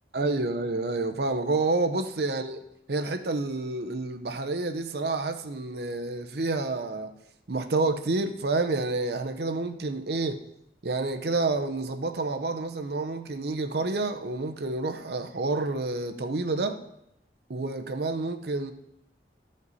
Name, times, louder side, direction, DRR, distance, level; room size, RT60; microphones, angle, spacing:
voice 1, 0.1-2.6 2.9-7.1 7.5-10.4 10.8-16.8 17.5-18.7, right 3 dB, 65° right, 0.7 m, -29 dB
13.5 x 5.2 x 4.1 m
head